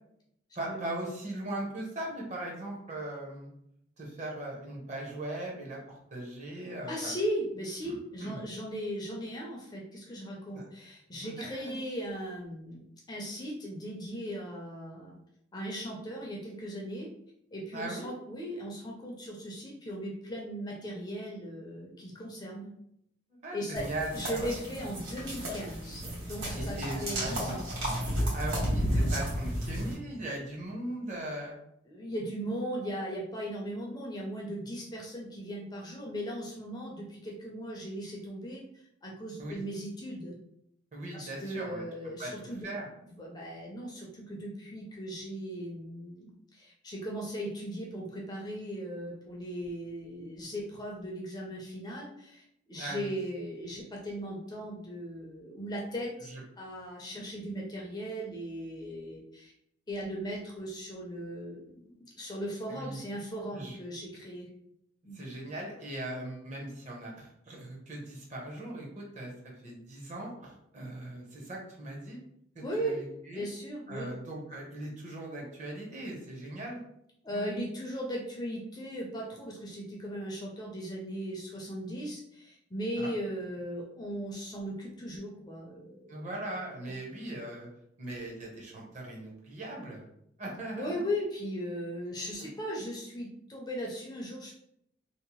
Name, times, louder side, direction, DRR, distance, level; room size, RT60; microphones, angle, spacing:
voice 1, 0.5-3.5 4.0-5.8 6.1-7.1 7.8-7.9 8.2-8.4 10.5-10.6 11.2-11.8 17.7-18.1 23.3-24.5 26.5-27.6 28.3-31.5 39.4-39.6 40.9-41.8 42.2-42.3 42.6-42.9 52.7-53.1 56.3-56.4 57.1-57.2 62.7-63.0 63.5-63.8 65.1-69.3 69.6-72.2 72.5-73.4 73.9-76.8 77.3-77.6 83.0-83.1 86.1-87.7 88.0-90.1 90.4-91.0 92.4-92.5, right 1 dB, 40° right, -2 dB, 0.7 m, -39 dB
voice 2, 6.9-15.1 15.5-17.1 17.5-22.7 23.5-26.8 27.0-27.6 31.9-38.6 39.0-40.4 41.1-42.7 43.1-59.5 59.9-64.5 65.0-65.3 72.6-73.0 73.3-74.1 77.2-86.3 86.8-86.9 90.8-94.5, equal, 20° left, -2 dB, 0.4 m, -38 dB
sound 1, 23.8-29.9, equal, 85° right, 1.1 m, -32 dB
2.7 x 2.0 x 2.9 m, 0.74 s
head